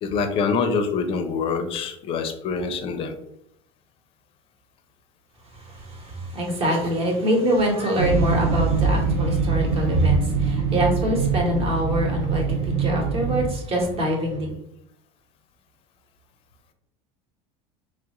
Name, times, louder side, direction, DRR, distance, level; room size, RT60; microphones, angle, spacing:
voice 1, 0.0-3.1, left 5 dB, 40° left, 8 dB, 0.4 m, -25 dB
voice 2, 5.6-14.5, equal, 40° right, 1 dB, 1.0 m, -24 dB
sound 1, 8.0-13.5, right 5 dB, 75° right, 0.6 m, -23 dB
3.1 x 2.4 x 2.9 m, 0.77 s
supercardioid pair, 130°, 15 cm